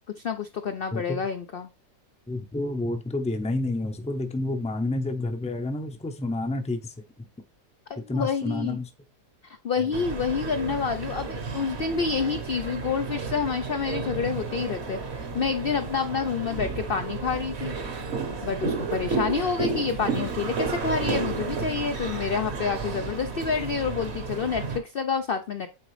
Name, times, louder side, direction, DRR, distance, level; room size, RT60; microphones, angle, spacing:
voice 1, 0.2-1.7 7.9-8.8 9.4-17.7 18.4-25.7, left 6 dB, 60° left, 0.6 m, -28 dB
voice 2, 0.9-1.3 2.3-7.3 8.1-8.9 9.8-9.9, left 2 dB, 5° left, 0.6 m, -29 dB
sound 1, 9.9-24.8, right 4 dB, 45° right, 1.2 m, -32 dB
9.0 x 3.7 x 3.2 m
omnidirectional pair, 1.7 m